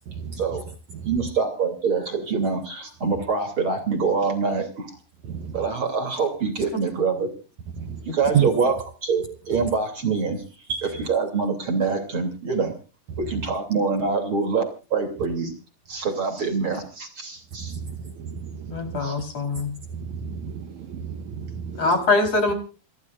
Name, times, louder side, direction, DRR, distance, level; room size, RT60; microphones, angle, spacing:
voice 1, 0.1-0.4 0.9-1.1 5.2-5.7 7.8-8.1 8.3-8.5 10.7-11.0 13.1-13.2 17.6-19.0 19.6-22.0, right 8 dB, 65° right, 2.1 m, -30 dB
voice 2, 1.0-5.0 5.5-7.3 8.1-8.7 9.0-10.4 10.8-12.7 13.2-14.6 14.9-15.5 15.9-17.8 19.0-19.2, right 4 dB, 35° right, 3.5 m, -25 dB
voice 3, 18.7-19.7 21.8-22.5, left 3 dB, 45° left, 5.1 m, -22 dB
29.0 x 13.5 x 2.5 m
omnidirectional pair, 4.1 m